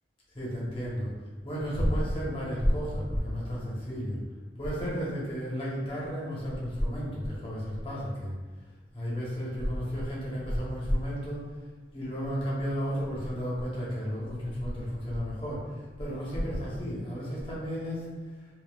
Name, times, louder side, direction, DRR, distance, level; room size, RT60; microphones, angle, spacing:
voice 1, 0.3-1.1 1.4-4.2 4.6-8.3 8.9-11.4 11.9-18.1, equal, 30° left, -7 dB, 1.2 m, -32 dB
5.2 x 2.7 x 2.4 m, 1.4 s
head